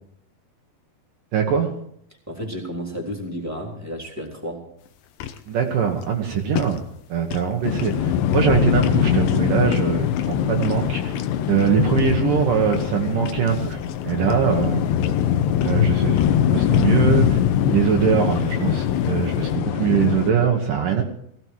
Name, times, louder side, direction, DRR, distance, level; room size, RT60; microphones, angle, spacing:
voice 1, 1.3-1.7 5.5-6.8 7.1-11.1 11.5-14.9 15.6-16.2 16.5-17.4 17.7-21.0, right 7 dB, 65° right, 2 dB, 2.6 m, -22 dB
voice 2, 2.3-4.7, equal, 5° right, 1 dB, 2.7 m, -32 dB
sound 1, 4.8-19.6, left 9 dB, 70° left, 2.6 m, -39 dB
sound 2, 7.6-20.3, left 9 dB, 90° left, 3.0 m, -22 dB
18.0 x 16.0 x 4.7 m, 0.68 s
omnidirectional pair, 4.7 m